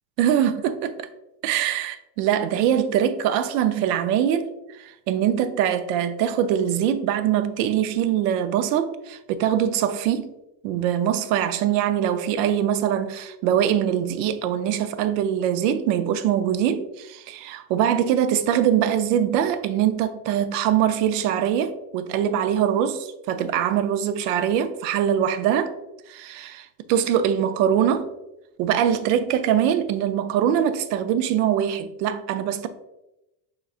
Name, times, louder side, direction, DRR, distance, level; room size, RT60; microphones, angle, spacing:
voice 1, 0.2-1.1 1.4-10.3 10.6-25.7 26.1-28.1 28.6-32.7, right 9 dB, 85° right, 0.6 m, -23 dB
5.7 x 3.8 x 2.4 m
cardioid pair, 135°, 49 cm